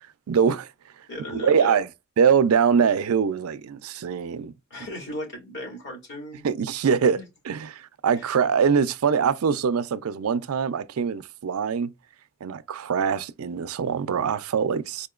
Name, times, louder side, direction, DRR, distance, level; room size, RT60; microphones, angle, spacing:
voice 1, 0.3-0.7 1.3-1.9 2.2-4.5 6.4-7.2 7.4-11.9 12.4-15.1, right 6 dB, 80° right, 0.4 m, -23 dB
voice 2, 1.1-1.8 4.7-6.5 7.1-7.3 8.2-8.3, left 1 dB, 55° left, 2.2 m, -36 dB
4.3 x 2.8 x 2.3 m
head